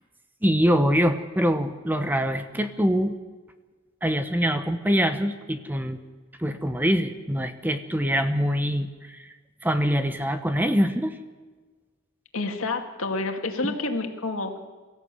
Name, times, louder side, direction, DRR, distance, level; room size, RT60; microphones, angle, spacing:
voice 1, 0.4-3.1 4.0-6.0 6.4-9.3 9.6-11.2 13.6-13.7, equal, 10° right, 8 dB, 0.9 m, -24 dB
voice 2, 12.3-14.6, left 3 dB, 80° left, 4 dB, 2.2 m, -29 dB
23.0 x 14.5 x 8.3 m, 1.4 s
head